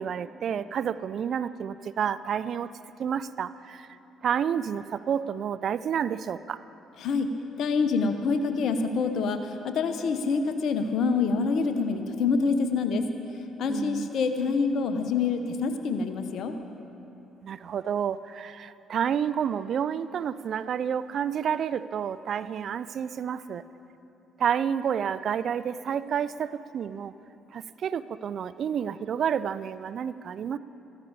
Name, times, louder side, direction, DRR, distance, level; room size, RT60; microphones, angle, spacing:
voice 1, 0.0-2.7 3.0-3.9 4.2-6.6 13.7-14.1 17.4-23.6 24.4-27.1 27.5-30.6, right 8 dB, 55° right, 15 dB, 0.4 m, -30 dB
voice 2, 7.0-7.3 7.6-13.1 13.6-16.5, left 4 dB, 65° left, 7 dB, 1.0 m, -26 dB
14.5 x 14.0 x 5.0 m, 2.9 s
hypercardioid pair, 50°, 0 cm